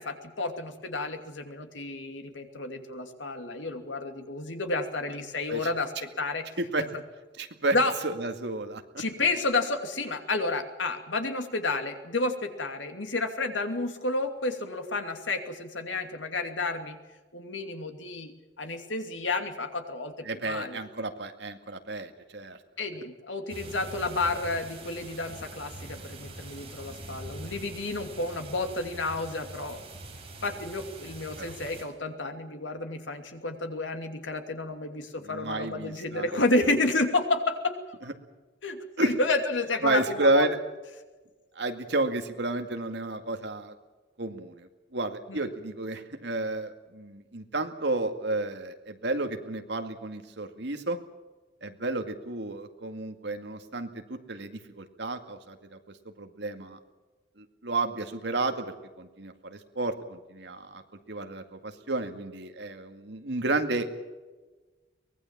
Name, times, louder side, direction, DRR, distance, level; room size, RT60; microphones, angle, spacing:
voice 1, 0.0-6.5 6.8-6.9 7.7-7.9 9.0-17.0 17.3-18.3 18.6-20.8 22.8-29.8 30.4-38.0 38.6-40.5 45.3-45.5, left 2 dB, 90° left, 6 dB, 2.7 m, -31 dB
voice 2, 7.4-7.8 8.0-8.8 20.3-22.6 31.4-31.5 35.2-36.4 39.0-39.1 39.8-40.6 41.6-43.7 44.2-51.0 51.6-55.8 56.2-56.8 57.4-60.8 61.1-64.0, right 2 dB, 65° right, 6 dB, 2.2 m, -31 dB
sound 1, 23.5-31.8, right 2 dB, 30° right, 5.5 m, -44 dB
23.5 x 20.0 x 7.4 m, 1.2 s
head